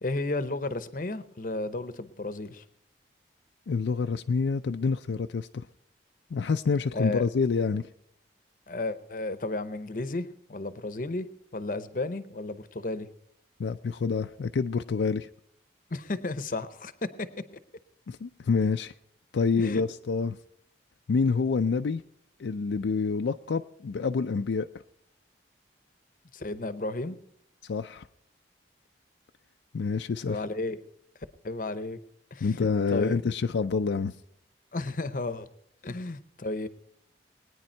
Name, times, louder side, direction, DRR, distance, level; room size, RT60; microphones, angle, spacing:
voice 1, 0.0-2.6 6.9-7.3 8.7-11.3 11.5-13.1 15.9-17.3 19.6-19.8 26.3-27.2 30.3-30.8 31.4-32.0 32.3-33.2 34.7-35.5 35.8-36.7, left 2 dB, 50° left, 13 dB, 0.8 m, -33 dB
voice 2, 3.7-5.7 6.3-7.8 13.6-15.3 18.1-18.9 19.3-20.4 21.1-22.0 22.4-24.7 27.6-28.1 29.7-30.4 32.4-34.1, left 5 dB, 80° left, 7 dB, 0.4 m, -27 dB
20.5 x 9.5 x 4.4 m, 0.71 s
head